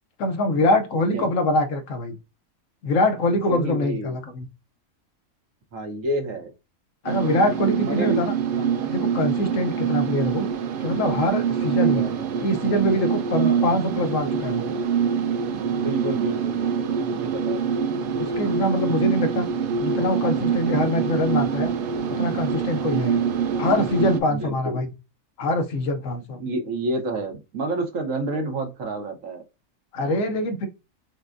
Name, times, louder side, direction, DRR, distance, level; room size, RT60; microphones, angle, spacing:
voice 1, 0.2-2.2 2.8-4.5 7.0-8.3 8.8-10.5 10.8-12.0 12.4-14.7 18.1-19.5 19.8-21.7 22.1-23.2 23.6-24.9 25.4-26.4 29.9-30.7, left 1 dB, 70° left, 1.1 m, -24 dB
voice 2, 3.5-4.2 5.7-6.5 7.8-8.2 8.5-8.9 11.7-12.2 13.3-13.6 15.8-17.6 24.3-24.8 26.4-29.4, right 2 dB, 70° right, 1.3 m, -29 dB
sound 1, 7.1-24.2, right 7 dB, 90° right, 0.4 m, -25 dB
5.9 x 2.2 x 2.5 m
omnidirectional pair, 1.5 m